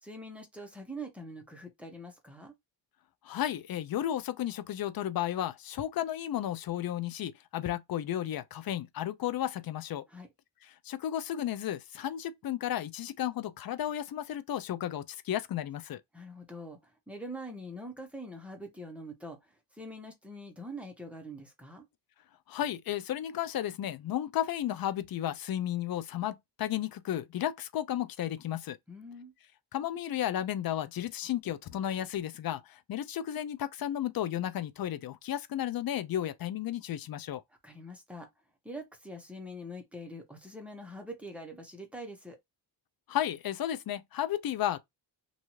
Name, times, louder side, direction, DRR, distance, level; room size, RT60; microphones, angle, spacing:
voice 1, 0.0-2.5 10.1-10.3 16.1-21.9 28.9-29.3 37.6-38.3 38.6-42.4, equal, 5° right, 0.9 m, -44 dB
voice 2, 3.2-10.0 10.6-16.0 22.5-28.8 29.7-37.4 43.1-44.8, left 11 dB, 55° left, 0.5 m, -33 dB
2.6 x 2.4 x 3.0 m
cardioid pair, 105°, 44 cm